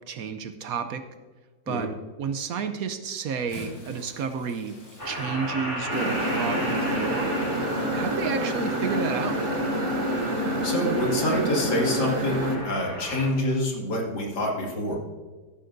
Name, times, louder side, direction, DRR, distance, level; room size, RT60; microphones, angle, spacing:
voice 1, 0.1-1.0 1.7-1.9 2.2-4.8 5.0-7.3 7.9-9.4, right 6 dB, 65° right, 9 dB, 1.0 m, -31 dB
Bathtub (filling or washing) / Splash splatter, 3.3-9.0 9.9-10.0 11.5-11.6, left 1 dB, 45° left, 4.3 m, -48 dB
sound 1, 5.0-13.3, equal, 10° left, 3.0 m, -35 dB
sound 2, 5.9-12.6, equal, 45° right, 1.4 m, -27 dB
voice 2, 10.3-15.0, left 1 dB, 75° left, -1 dB, 2.7 m, -27 dB
14.0 x 11.0 x 2.6 m, 1.3 s
omnidirectional pair, 1.8 m